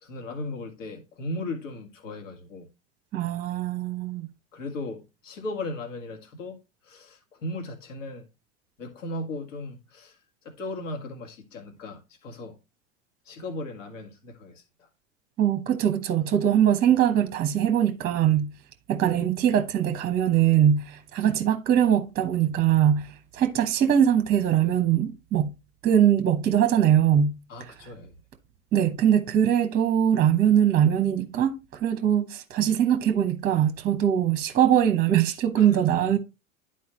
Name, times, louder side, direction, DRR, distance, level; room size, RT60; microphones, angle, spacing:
voice 1, 0.0-2.7 4.5-6.6 6.8-8.3 8.8-10.2 10.4-12.6 13.3-14.9 27.5-28.1 35.6-36.2, left 2 dB, 65° left, 2.0 m, -37 dB
voice 2, 3.1-4.3 15.4-18.5 18.9-23.1 23.3-25.5 25.8-27.3 28.7-36.2, right 10 dB, 25° right, 0.8 m, -22 dB
11.0 x 4.3 x 3.1 m
figure-of-eight pair, 90°, 40 cm